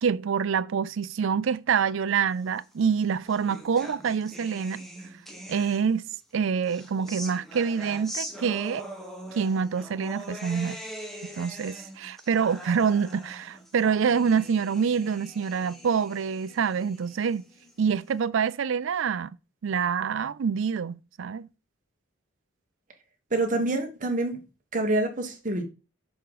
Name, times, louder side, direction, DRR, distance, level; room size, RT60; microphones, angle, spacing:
voice 1, 0.0-4.8 5.5-6.0 6.3-8.9 9.3-10.8 11.4-17.4 17.8-19.3 19.6-21.5, right 6 dB, 65° right, 0.4 m, -26 dB
sound 1, 2.7-6.1 6.6-18.1, equal, ahead, 0.9 m, -42 dB
voice 2, 23.3-24.4 24.7-25.6, right 2 dB, 35° right, 1.3 m, -26 dB
7.2 x 3.7 x 4.9 m
head